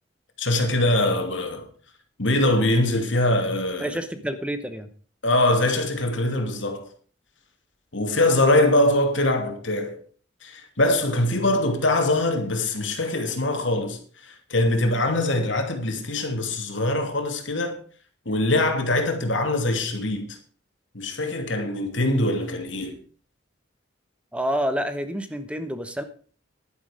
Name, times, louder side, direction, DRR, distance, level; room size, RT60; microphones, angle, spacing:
voice 1, 0.4-1.7 2.2-3.9 5.2-6.9 7.9-10.0 10.4-17.8 18.3-20.4 20.9-23.0, left 1 dB, 80° left, 2.7 m, -23 dB
voice 2, 3.8-4.9 24.3-26.0, equal, 5° right, 1.0 m, -28 dB
11.5 x 10.5 x 5.1 m
head